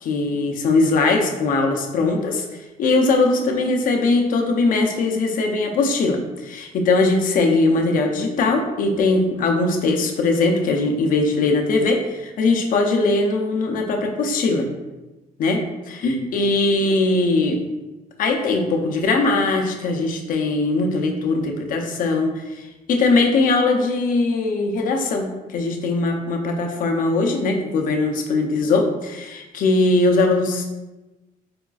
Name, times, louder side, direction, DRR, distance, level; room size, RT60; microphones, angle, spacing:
voice 1, 0.0-2.4 2.8-14.7 15.4-17.6 18.2-30.8, left 3 dB, 60° left, 3 dB, 0.5 m, -20 dB
4.9 x 2.3 x 2.3 m, 1.1 s
cardioid pair, 125°, 15 cm